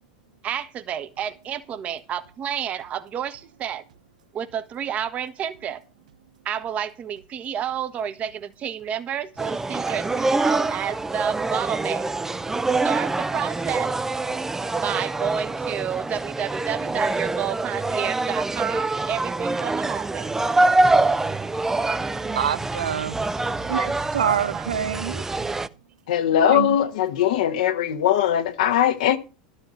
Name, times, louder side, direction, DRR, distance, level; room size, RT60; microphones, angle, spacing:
voice 1, 0.4-3.8 4.3-5.8 6.4-12.1 12.8-14.0 14.8-20.4 24.5-24.7 25.2-25.4, right 9 dB, 35° right, 1.2 m, -30 dB
sound 1, 9.4-25.7, right 2 dB, 10° right, 0.5 m, -25 dB
voice 2, 22.3-23.2 23.7-25.2 26.5-26.8, right 9 dB, 85° right, 0.5 m, -26 dB
voice 3, 26.1-29.2, left 10 dB, 75° left, 1.1 m, -20 dB
12.0 x 5.5 x 6.9 m
hypercardioid pair, 95°, 4 cm